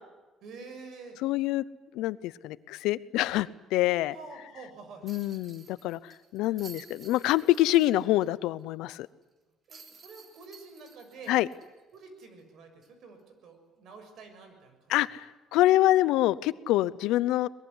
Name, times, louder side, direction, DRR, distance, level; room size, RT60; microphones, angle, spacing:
voice 1, 0.4-1.2 4.1-5.1 9.7-11.4 11.9-15.0, right 4 dB, 65° right, 7 dB, 6.5 m, -48 dB
voice 2, 1.2-1.6 1.9-4.1 5.0-6.0 6.3-9.1 11.3-11.5 14.9-15.2 15.5-17.5, left 15 dB, 85° left, 18 dB, 0.7 m, -25 dB
sound 1, 5.1-8.3 8.6-8.7 9.7-12.4 12.8-12.9 15.0-15.2, right 4 dB, 35° right, 3.2 m, -53 dB
23.0 x 21.5 x 10.0 m, 1.2 s
cardioid pair, 120°, 0 cm